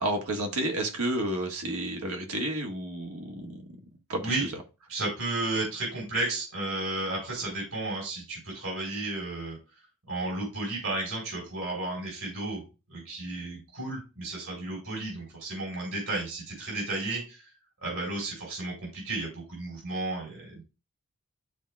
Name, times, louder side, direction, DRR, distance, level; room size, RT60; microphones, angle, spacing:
voice 1, 0.0-3.6 4.1-4.2, right 1 dB, 90° right, 1.6 m, -31 dB
voice 2, 4.9-9.6 10.1-12.6 12.9-17.5 17.8-20.6, right 2 dB, 70° right, 4.2 m, -33 dB
12.0 x 4.6 x 2.3 m
head